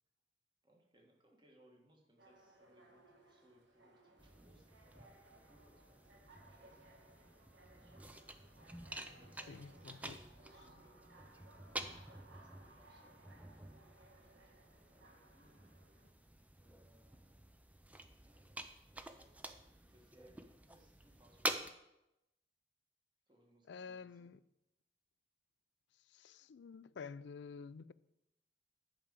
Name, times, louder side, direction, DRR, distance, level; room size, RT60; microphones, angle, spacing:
voice 1, 0.6-7.0 8.7-13.3 14.2-15.7 16.6-17.7 18.3-19.5 19.8-21.7 23.3-24.3, right 1 dB, 25° right, 1.6 m, -69 dB
sound 1, 2.2-16.1, right 2 dB, 85° right, 1.4 m, -63 dB
sound 2, 4.2-21.7, right 1 dB, 10° right, 0.4 m, -49 dB
voice 2, 9.5-10.2 23.7-24.4 26.1-27.9, left 5 dB, 75° left, 0.4 m, -50 dB
10.5 x 5.0 x 7.2 m
head